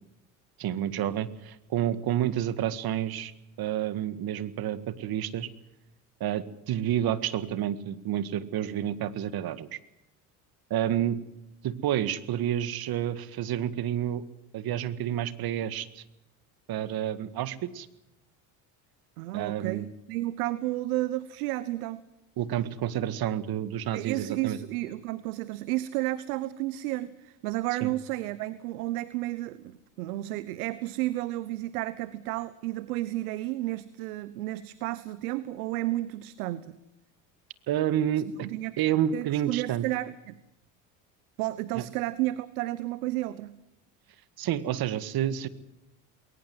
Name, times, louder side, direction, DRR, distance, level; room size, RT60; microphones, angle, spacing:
voice 1, 0.6-3.3 3.6-5.5 6.2-9.8 10.7-11.2 11.6-14.2 14.5-16.0 16.7-17.9 19.3-19.9 22.4-24.6 27.8-27.9 37.7-38.3 38.8-39.9 41.7-41.8 44.4-45.5, right 11 dB, 55° right, 16 dB, 1.8 m, -29 dB
voice 2, 19.2-22.0 23.9-36.8 38.4-38.8 39.1-40.4 41.4-43.6, right 17 dB, 85° right, 17 dB, 1.0 m, -32 dB
21.5 x 19.0 x 7.8 m, 0.88 s
supercardioid pair, 80°, 43 cm